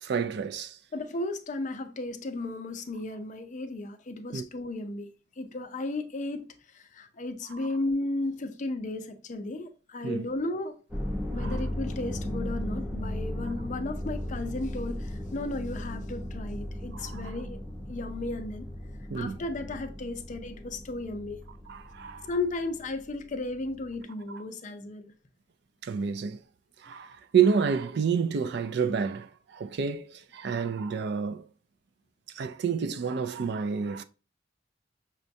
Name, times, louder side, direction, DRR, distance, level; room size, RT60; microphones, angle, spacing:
voice 1, 0.0-0.8 4.3-4.5 10.0-10.3 11.4-11.6 16.9-17.2 19.1-19.4 21.7-22.3 24.3-24.4 25.8-26.4 26.8-31.4 32.3-34.0, right 6 dB, 60° right, 0.4 m, -29 dB
voice 2, 0.9-5.1 5.4-6.5 6.7-10.8 11.3-17.6 17.9-18.7 19.2-21.4 22.2-25.1, left 2 dB, 40° left, 0.5 m, -34 dB
sound 1, 10.9-23.0 23.4-24.0, left 1 dB, 5° right, 0.8 m, -36 dB
6.1 x 2.2 x 2.6 m
head